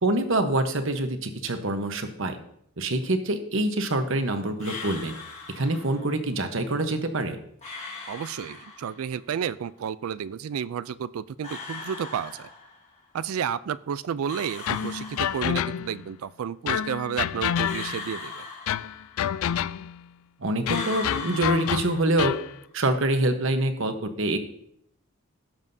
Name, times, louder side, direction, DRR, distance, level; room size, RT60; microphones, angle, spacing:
voice 1, 0.0-2.4 2.8-5.1 5.6-7.4 20.4-22.4 22.7-24.4, right 1 dB, 65° right, 7 dB, 1.0 m, -25 dB
sound 1, 4.6-6.1 7.6-9.1 11.4-13.0 14.3-15.8 17.6-19.4 20.6-22.5, left 4 dB, 30° left, 2.1 m, -39 dB
voice 2, 8.1-12.5 13.1-18.5, right 8 dB, 80° right, 16 dB, 0.4 m, -31 dB
sound 2, 14.7-16.1 16.7-18.1 18.7-20.0 20.7-22.5, left 9 dB, 75° left, 0.3 m, -28 dB
17.0 x 7.2 x 2.7 m, 0.72 s
head